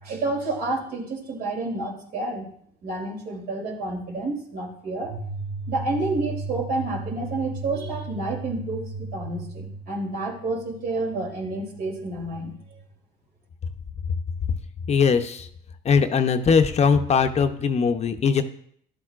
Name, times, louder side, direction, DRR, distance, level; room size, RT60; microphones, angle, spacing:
voice 1, 0.0-2.5 2.8-12.8, right 2 dB, 60° right, 0 dB, 3.1 m, -29 dB
voice 2, 14.9-15.5 15.8-18.4, left 5 dB, 40° left, 7 dB, 0.8 m, -20 dB
12.5 x 11.5 x 2.5 m, 0.64 s
cardioid pair, 110°, 17 cm